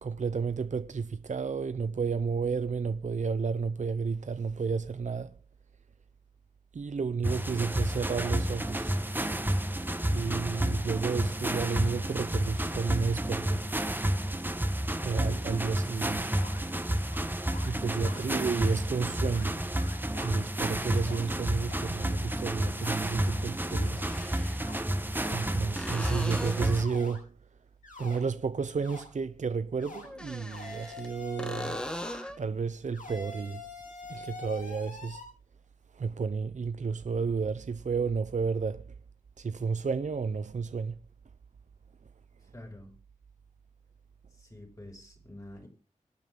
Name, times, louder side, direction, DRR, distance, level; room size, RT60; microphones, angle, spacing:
voice 1, 0.0-5.4 6.7-9.0 10.1-13.6 15.0-16.3 17.6-19.6 20.2-24.0 25.3-27.3 28.0-31.8 32.4-33.7 34.1-35.2 35.9-38.9 39.4-41.0, right 5 dB, 65° right, 0.6 m, -32 dB
sound 1, 7.2-26.8, right 1 dB, 15° right, 1.3 m, -30 dB
sound 2, 15.7-15.8 16.4-16.6 17.1-17.3 17.5-17.7 18.1-18.2 18.7-18.8 19.0-19.5 19.8-20.4 21.1-21.2 21.7-21.8 22.3-22.4 22.8-22.9 23.3-23.4 23.7-24.1 24.6-24.7 25.2-25.5 26.0-26.2 26.7-27.2 27.8-28.2 28.8-29.0 29.8-30.1 30.5-32.3 32.9-35.2, left 3 dB, 90° left, 7.5 m, -45 dB
voice 2, 17.7-18.2 42.5-42.9 44.3-45.7, left 1 dB, 25° left, 5.9 m, -47 dB
sound 3, 23.9-24.7 25.8-26.9 30.0-31.1 31.4-32.4 36.1-36.2, equal, 5° left, 1.4 m, -39 dB
25.5 x 9.0 x 3.7 m
wide cardioid pair, 55°, 13 cm